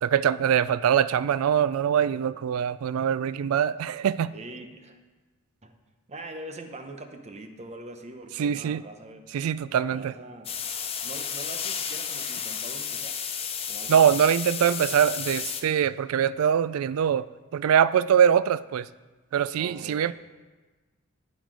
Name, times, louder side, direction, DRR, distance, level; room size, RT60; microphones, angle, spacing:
voice 1, 0.0-4.3 8.4-8.8 9.3-10.1 13.9-17.3 17.5-18.9 19.3-20.1, right 8 dB, 75° right, 17 dB, 0.3 m, -23 dB
voice 2, 4.3-5.0 5.6-5.7 6.1-9.2 9.9-10.6 11.0-13.2 13.7-14.2 19.6-20.1, right 2 dB, 30° right, 6 dB, 0.8 m, -42 dB
sound 1, 10.4-15.6, left 7 dB, 30° left, 0.7 m, -32 dB
9.5 x 7.8 x 4.8 m, 1.3 s
head